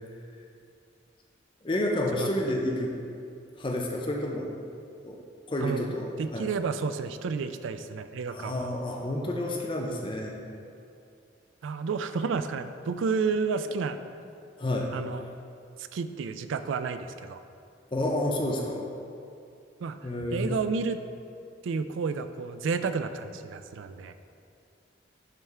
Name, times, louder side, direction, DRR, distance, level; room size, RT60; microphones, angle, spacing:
voice 1, 1.6-2.9 3.6-4.5 5.0-5.2 5.5-6.5 8.3-10.4 13.7-13.8 14.6-14.9 17.9-18.9 20.0-20.5, left 1 dB, 25° left, 0 dB, 0.5 m, -30 dB
voice 2, 5.6-5.9 6.2-8.7 11.6-14.0 14.9-15.2 15.8-17.4 19.8-20.0 20.3-21.0 21.6-24.1, right 5 dB, 80° right, 10 dB, 0.3 m, -31 dB
10.5 x 3.5 x 3.3 m, 2.4 s
head